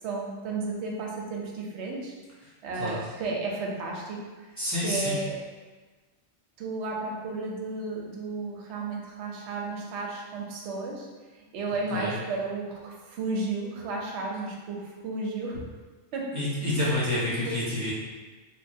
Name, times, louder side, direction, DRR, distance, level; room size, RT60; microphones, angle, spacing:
voice 1, 0.0-2.1 2.6-5.4 6.6-11.1 11.3-15.6 16.1-16.3 16.8-17.6, right 3 dB, 75° right, -1 dB, 0.8 m, -33 dB
voice 2, 4.6-5.2 11.9-12.2 16.3-17.9, left 1 dB, 15° right, -11 dB, 0.7 m, -28 dB
3.0 x 2.3 x 2.6 m, 1.3 s
omnidirectional pair, 1.2 m